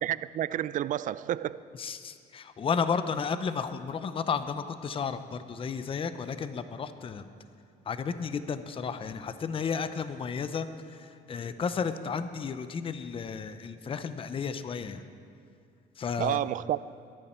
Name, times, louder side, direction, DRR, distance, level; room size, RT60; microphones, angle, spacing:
voice 1, 0.0-1.6 16.2-16.9, right 12 dB, 50° right, 0.4 m, -30 dB
voice 2, 1.8-7.3 7.9-15.0 16.0-16.4, left 6 dB, 30° left, 0.7 m, -33 dB
22.0 x 11.0 x 4.5 m
cardioid pair, 110°, 17 cm